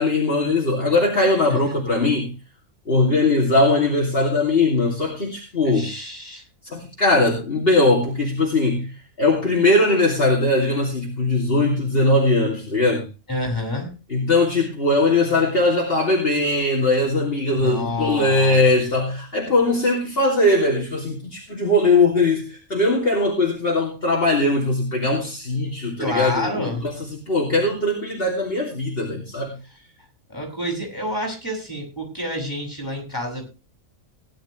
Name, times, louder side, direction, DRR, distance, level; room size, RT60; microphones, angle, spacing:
voice 1, 0.0-2.3 2.9-5.9 6.7-13.1 14.1-29.5, left 2 dB, 40° left, -2 dB, 2.9 m, -20 dB
voice 2, 5.6-6.4 13.3-13.9 17.4-18.6 26.0-26.9 30.3-33.5, left 1 dB, 15° left, 2 dB, 6.6 m, -28 dB
18.0 x 11.0 x 3.2 m, 0.28 s
omnidirectional pair, 1.5 m